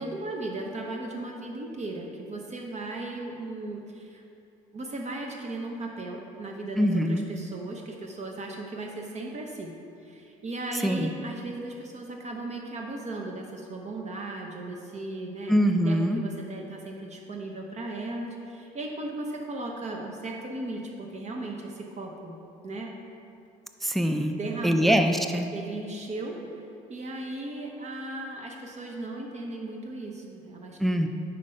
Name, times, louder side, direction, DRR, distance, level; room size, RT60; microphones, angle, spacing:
voice 1, 0.0-4.2 4.7-9.7 10.0-15.5 15.8-22.4 22.6-22.9 24.3-25.0 25.5-26.4 26.9-31.1, right 2 dB, 40° right, 1 dB, 0.8 m, -36 dB
voice 2, 6.8-7.2 10.8-11.1 15.5-16.2 23.8-24.3 24.6-25.5 30.8-31.1, equal, ahead, 6 dB, 0.4 m, -23 dB
5.1 x 4.5 x 5.2 m, 2.6 s
supercardioid pair, 70°, 17 cm